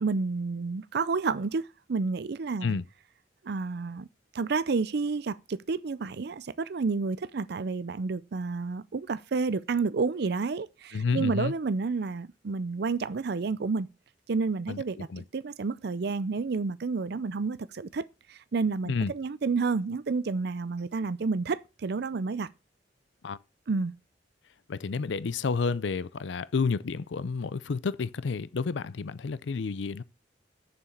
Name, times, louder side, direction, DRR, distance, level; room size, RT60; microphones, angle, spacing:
voice 1, 0.0-2.7 3.4-4.1 4.3-13.9 14.3-15.1 15.3-22.5 23.7-23.9, right 4 dB, 60° right, 0.5 m, -30 dB
voice 2, 10.9-11.5 14.7-14.8 15.1-15.2 18.9-19.1 23.2-23.4 24.7-30.0, left 4 dB, 85° left, 0.5 m, -30 dB
7.1 x 6.9 x 6.4 m
head